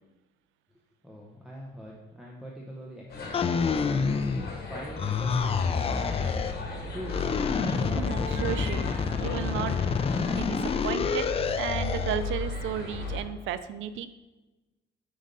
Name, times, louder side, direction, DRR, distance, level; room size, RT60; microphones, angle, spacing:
voice 1, 1.0-4.2 4.7-7.4, equal, 5° right, -3 dB, 0.8 m, -43 dB
sound 1, 3.1-13.2, left 3 dB, 55° left, 1.3 m, -36 dB
sound 2, 3.3-4.6 5.0-6.6 7.1-12.2, left 5 dB, 30° left, 0.4 m, -28 dB
voice 2, 7.8-8.9 9.2-9.8 10.3-11.3 11.6-14.1, right 9 dB, 80° right, 12 dB, 0.4 m, -33 dB
5.2 x 3.8 x 5.3 m, 1.1 s
cardioid pair, 90°, 20 cm